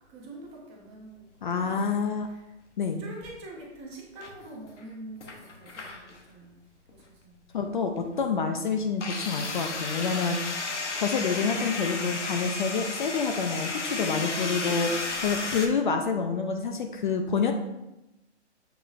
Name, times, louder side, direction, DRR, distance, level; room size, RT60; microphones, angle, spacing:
voice 1, 0.1-1.2 1.6-1.9 2.2-2.5 3.0-6.6 6.9-7.4 13.7-15.6, right 1 dB, 20° right, -1 dB, 0.7 m, -45 dB
voice 2, 1.4-2.3 2.8-3.0 7.5-10.4 11.0-14.9 15.2-17.5, left 5 dB, 45° left, 4 dB, 0.4 m, -27 dB
sound 1, 4.2-4.8 5.2-6.2 6.9-7.0 9.0-15.7, left 3 dB, 85° left, 0.8 m, -33 dB
6.7 x 3.0 x 2.4 m, 0.93 s
figure-of-eight pair, 135°, 35 cm